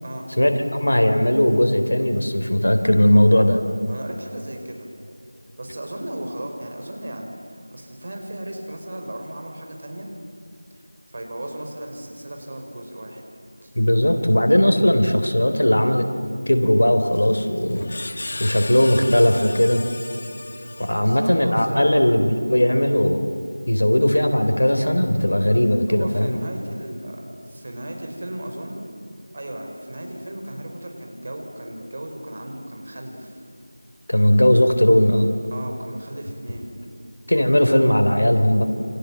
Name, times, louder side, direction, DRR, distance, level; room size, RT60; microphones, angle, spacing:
voice 1, 0.4-3.6 13.8-16.1 16.5-17.8 18.4-19.9 20.8-23.4 23.7-26.4 34.1-35.3 37.3-38.7, left 1 dB, 70° left, 7 dB, 3.7 m, -18 dB
voice 2, 3.9-4.9 5.6-10.1 10.7-10.8 11.1-13.2 13.6-13.7 21.0-22.2 25.9-28.9 29.3-33.4 35.5-36.7, right 1 dB, 40° right, 3 dB, 5.3 m, -35 dB
Screech, 17.1-21.4, left 2 dB, 45° left, 1.5 m, -35 dB
29.0 x 26.5 x 7.7 m, 2.7 s
figure-of-eight pair, 170°, 0 cm